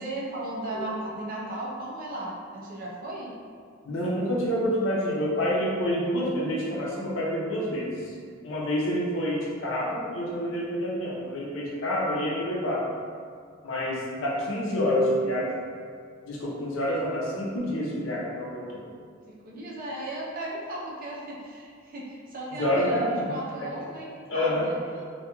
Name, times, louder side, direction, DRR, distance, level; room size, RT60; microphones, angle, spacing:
voice 1, 0.0-3.3 19.3-25.0, right 1 dB, 50° right, -5 dB, 0.5 m, -36 dB
voice 2, 3.8-8.1 8.4-12.8 13.6-15.6 16.2-18.8 22.6-23.7 24.3-24.7, equal, 90° left, -4 dB, 0.6 m, -28 dB
2.9 x 2.3 x 2.2 m, 2.1 s
head